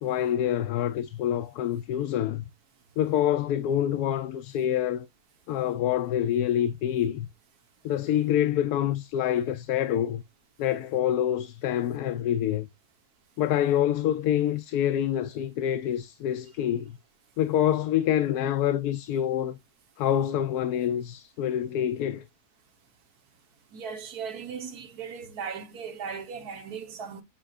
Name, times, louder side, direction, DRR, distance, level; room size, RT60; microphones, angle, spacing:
voice 1, 0.0-2.5 3.0-5.1 5.5-7.3 7.8-10.2 10.6-12.7 13.4-17.0 17.4-19.6 20.0-22.2, left 10 dB, 80° left, 1.1 m, -26 dB
voice 2, 23.7-27.2, right 6 dB, 75° right, 1.7 m, -37 dB
8.8 x 4.5 x 2.4 m
omnidirectional pair, 1.6 m